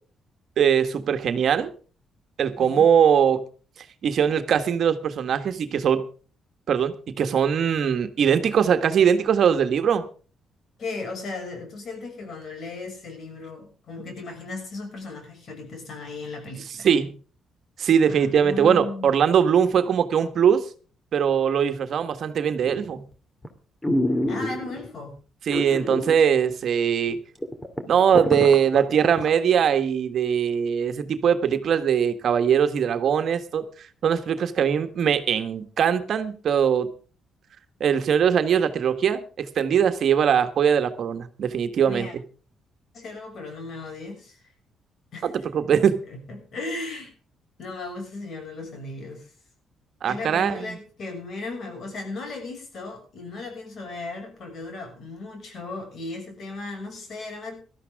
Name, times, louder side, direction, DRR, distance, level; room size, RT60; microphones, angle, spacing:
voice 1, 0.6-1.7 2.4-3.4 4.0-6.0 6.7-10.1 16.8-17.1 17.8-20.6 21.1-23.0 25.5-27.2 27.9-33.6 34.0-36.9 37.8-42.1 45.2-46.0 50.0-50.8, right 8 dB, 60° right, 9 dB, 1.5 m, -21 dB
voice 2, 10.8-16.9 18.1-19.3 24.3-25.1 41.8-42.1 42.9-44.4 45.1-45.3 46.1-47.1 47.6-49.3 50.0-57.6, left 3 dB, 60° left, 5 dB, 6.3 m, -36 dB
sound 1, 22.7-23.0 23.4-23.5 23.8-24.9 25.5-26.2 26.5-26.6 27.1-27.2 27.4-29.3 29.7-29.8, left 1 dB, 15° left, 2.6 m, -26 dB
18.5 x 13.0 x 3.6 m, 0.38 s
cardioid pair, 90°, 0 cm